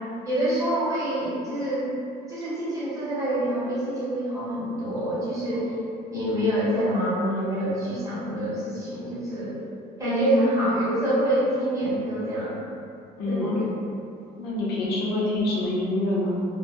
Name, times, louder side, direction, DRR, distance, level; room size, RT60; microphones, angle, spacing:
voice 1, 0.2-1.9 2.3-5.8 6.1-9.5 10.0-12.6 13.3-13.6, right 1 dB, 20° right, -11 dB, 1.0 m, -26 dB
voice 2, 13.2-13.5 14.4-16.5, left 2 dB, 75° left, -5 dB, 0.6 m, -26 dB
2.1 x 2.1 x 2.8 m, 2.5 s
cardioid pair, 110°, 17 cm